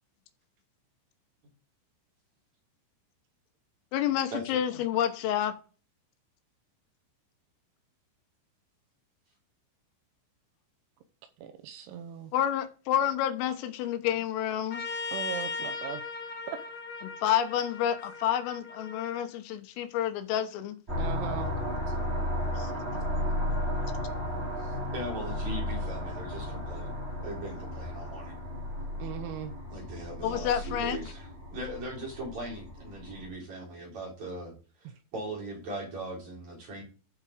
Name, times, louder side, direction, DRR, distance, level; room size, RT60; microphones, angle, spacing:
voice 1, 3.9-5.6 12.3-14.8 17.2-20.8 22.5-22.7 30.2-31.0, left 10 dB, 85° left, 3.7 m, -29 dB
voice 2, 11.4-12.3 15.1-16.0 16.5-16.6 21.0-21.5 29.0-29.5 34.8-34.9, right 9 dB, 80° right, 3.0 m, -38 dB
Trumpet, 14.7-19.3, left 4 dB, 70° left, 1.8 m, -38 dB
sound 1, 20.9-33.2, left 1 dB, 15° right, 2.2 m, -34 dB
voice 3, 24.6-26.9 27.2-28.4 29.7-34.5 35.1-36.8, right 1 dB, 40° right, 4.5 m, -39 dB
12.0 x 5.6 x 5.0 m
omnidirectional pair, 5.7 m